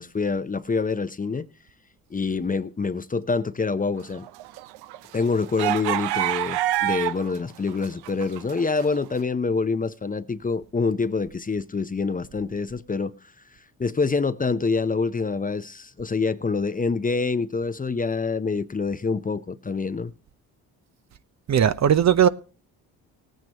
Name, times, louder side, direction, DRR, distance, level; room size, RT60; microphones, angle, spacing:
voice 1, 0.0-1.5 2.1-4.3 5.1-13.1 13.8-20.1, left 4 dB, 20° left, 0.7 m, -26 dB
sound 1, 4.2-7.4 7.7-9.0, right 15 dB, 75° right, 0.6 m, -27 dB
voice 2, 21.5-22.3, right 9 dB, 45° right, 0.7 m, -18 dB
18.5 x 9.2 x 2.9 m
hypercardioid pair, 55°, 40 cm